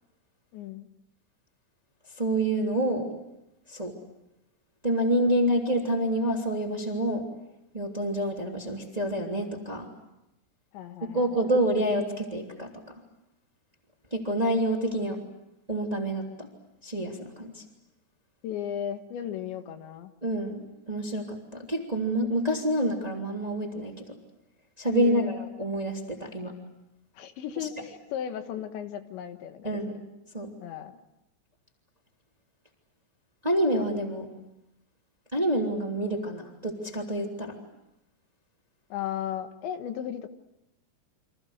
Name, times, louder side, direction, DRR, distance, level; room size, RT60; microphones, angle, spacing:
voice 1, 0.5-0.9 10.7-11.4 18.4-20.1 24.9-25.4 27.2-29.9 30.6-31.0 38.9-40.3, left 10 dB, 80° left, 8 dB, 3.7 m, -35 dB
voice 2, 2.2-3.1 3.7-3.9 4.8-7.3 7.7-9.9 11.0-12.7 14.1-15.2 15.7-16.5 16.8-17.6 20.2-23.9 24.8-26.5 29.6-30.0 30.3-30.5 33.4-34.3 35.3-37.6, right 1 dB, 10° right, 1 dB, 2.3 m, -27 dB
29.5 x 26.0 x 6.5 m, 0.91 s
omnidirectional pair, 5.2 m